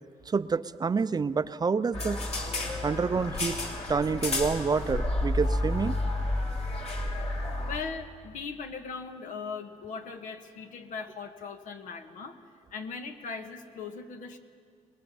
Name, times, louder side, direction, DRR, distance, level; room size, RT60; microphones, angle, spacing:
voice 1, 0.3-2.2 2.8-3.6 3.9-6.0, right 5 dB, 30° right, 14 dB, 0.6 m, -28 dB
sound 1, 1.9-7.8, left 1 dB, 50° left, 3.2 m, -30 dB
voice 2, 7.7-12.4 12.7-14.4, left 5 dB, 80° left, 6 dB, 1.6 m, -39 dB
23.0 x 20.0 x 7.1 m, 2.1 s
cardioid pair, 95°, 13 cm